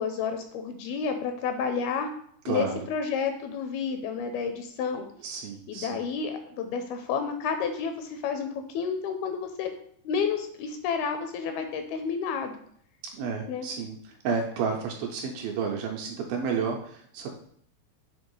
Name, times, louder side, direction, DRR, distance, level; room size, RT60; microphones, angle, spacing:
voice 1, 0.0-2.1 2.5-5.1 5.7-9.7 10.0-12.6 13.5-13.7, left 6 dB, 80° left, 6 dB, 2.3 m, -30 dB
voice 2, 2.5-2.8 5.2-6.0 13.1-17.3, right 5 dB, 75° right, 2 dB, 2.2 m, -31 dB
7.1 x 3.5 x 5.3 m, 0.64 s
omnidirectional pair, 4.7 m